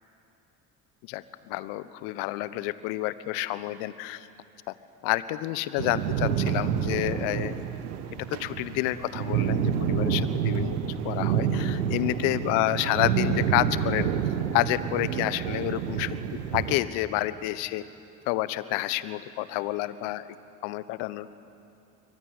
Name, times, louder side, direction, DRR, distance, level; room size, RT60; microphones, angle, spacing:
voice 1, 1.0-4.3 4.7-4.8 5.0-7.6 8.2-14.1 14.5-17.8 18.3-20.3 20.6-21.3, left 16 dB, 75° left, 15 dB, 1.2 m, -29 dB
sound 1, 5.8-16.8, right 8 dB, 85° right, 1.4 m, -28 dB
24.5 x 24.0 x 9.8 m, 2.7 s
hypercardioid pair, 55°, 44 cm